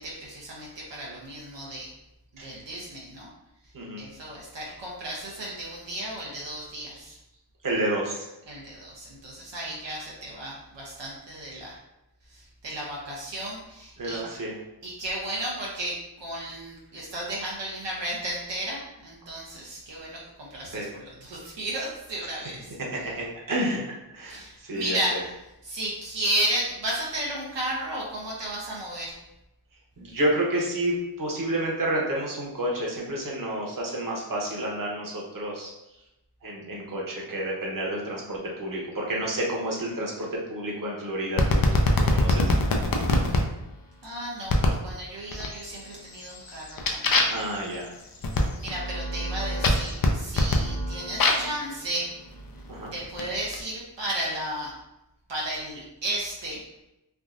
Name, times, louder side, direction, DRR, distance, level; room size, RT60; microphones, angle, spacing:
voice 1, 0.0-1.9 2.4-3.3 4.0-7.2 8.5-11.8 12.3-14.2 14.8-22.8 24.2-25.3 25.6-29.2 43.2-43.4 44.0-47.4 48.5-52.1 52.9-54.7 55.3-56.6, right 1 dB, 85° right, -4 dB, 0.7 m, -33 dB
voice 2, 7.6-8.3 14.0-14.5 20.7-20.9 22.9-23.8 24.1-25.2 30.0-35.7 36.4-41.6 41.9-42.5 47.3-47.9 52.7-52.9, right 1 dB, 50° right, -3 dB, 1.0 m, -30 dB
sound 1, 41.4-43.4 44.5-44.8 45.3-45.8 46.2-51.6 52.4-53.6, left 2 dB, 55° left, 0.5 m, -24 dB
3.5 x 2.5 x 2.5 m, 0.91 s
wide cardioid pair, 50°, 42 cm